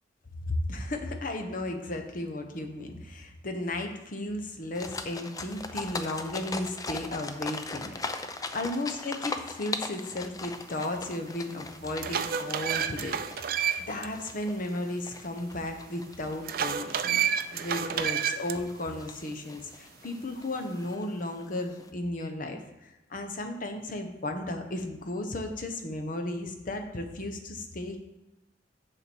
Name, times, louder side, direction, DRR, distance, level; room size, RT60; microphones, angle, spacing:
voice 1, 0.5-17.2 17.5-22.6 23.1-28.0, left 1 dB, 50° left, 4 dB, 0.9 m, -34 dB
sound 1, 4.7-21.9, left 3 dB, 20° left, 0.5 m, -41 dB
sound 2, 11.1-11.2 11.7-14.1 14.4-14.5 16.4-18.6, right 8 dB, 55° right, 0.4 m, -29 dB
7.0 x 7.0 x 4.5 m, 1.0 s
head